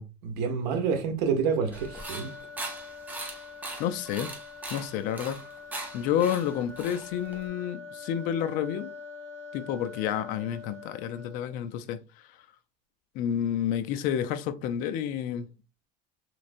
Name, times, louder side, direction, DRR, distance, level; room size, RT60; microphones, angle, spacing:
voice 1, 0.0-2.3, right 6 dB, 80° right, 0.9 m, -28 dB
sound 1, 1.7-11.6, left 4 dB, 10° left, 1.5 m, -45 dB
sound 2, 1.7-7.5, right 2 dB, 10° right, 0.5 m, -40 dB
voice 2, 3.8-4.3 4.7-5.4 5.9-8.9 9.5-12.3 13.1-15.5, left 9 dB, 45° left, 0.4 m, -30 dB
3.2 x 3.1 x 2.5 m
cardioid pair, 165°, 19 cm